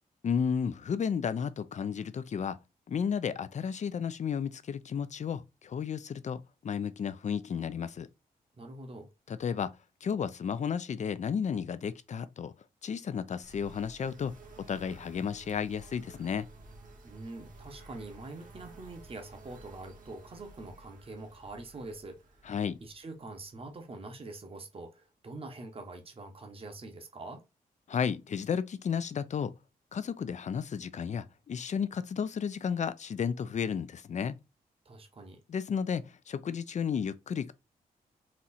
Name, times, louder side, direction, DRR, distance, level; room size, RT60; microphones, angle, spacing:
voice 1, 0.2-2.6 2.9-8.1 9.3-9.7 10.0-12.5 12.8-16.5 22.5-22.8 27.9-29.5 29.9-34.4 35.5-37.5, left 7 dB, 50° left, 0.5 m, -33 dB
voice 2, 8.6-9.1 17.0-22.2 22.8-27.4 34.8-35.4, right 2 dB, 35° right, 1.0 m, -45 dB
sound 1, 13.4-24.0, right 2 dB, 55° right, 1.3 m, -53 dB
4.3 x 2.4 x 4.1 m
cardioid pair, 85°, 16 cm